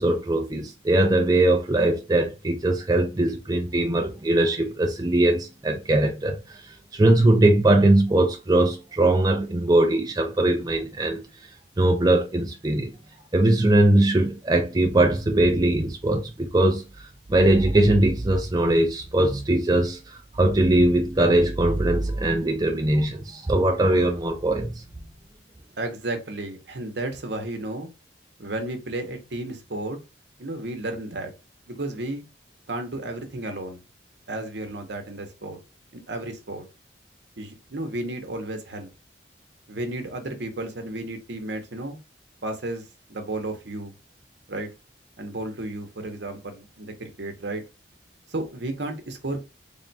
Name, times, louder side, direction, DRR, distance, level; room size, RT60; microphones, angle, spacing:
voice 1, 0.0-11.2 11.8-12.9 13.3-24.8, right 1 dB, 20° right, 0.4 m, -21 dB
voice 2, 25.8-27.9 28.4-30.0 30.4-31.3 31.7-32.2 32.7-33.8 34.3-35.6 35.9-36.6 37.4-38.9 39.7-42.0 42.4-43.9 44.5-44.7 45.2-47.6 48.3-49.4, right 2 dB, 65° right, 0.8 m, -33 dB
3.5 x 2.3 x 4.0 m
head